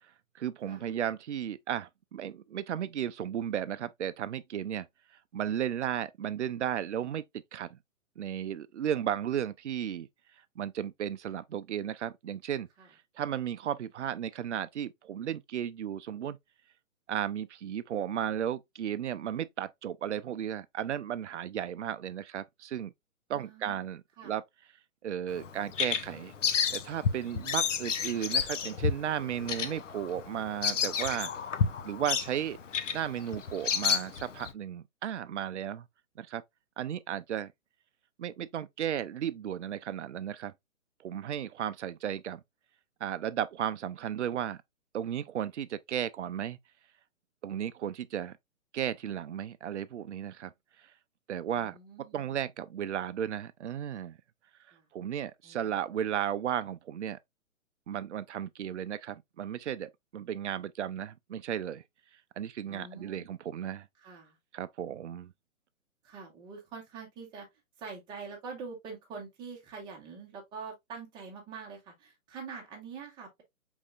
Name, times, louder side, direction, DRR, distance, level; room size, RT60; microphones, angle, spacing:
voice 1, 0.3-4.9 5.3-7.2 7.5-7.8 8.2-10.1 10.6-12.7 13.2-16.4 17.1-22.9 23.3-24.4 25.0-26.3 26.7-31.3 31.8-32.6 32.9-35.9 36.2-36.4 36.8-37.5 38.2-40.5 41.0-42.4 43.0-44.6 44.9-46.6 47.4-48.3 48.7-50.5 51.3-51.8 52.1-54.2 54.9-57.2 57.9-61.8 62.4-63.9 64.5-65.3, right 10 dB, 55° right, 0.5 m, -34 dB
voice 2, 23.3-23.8 24.2-24.3 51.5-52.3 54.7-54.8 55.4-55.8 62.7-63.3 64.0-64.4 66.0-67.5 67.8-73.4, right 5 dB, 10° right, 0.9 m, -45 dB
Bird vocalization bird call bird song, 25.3-34.5, left 6 dB, 60° left, 0.6 m, -31 dB
4.8 x 3.5 x 2.4 m
figure-of-eight pair, 125°, 42 cm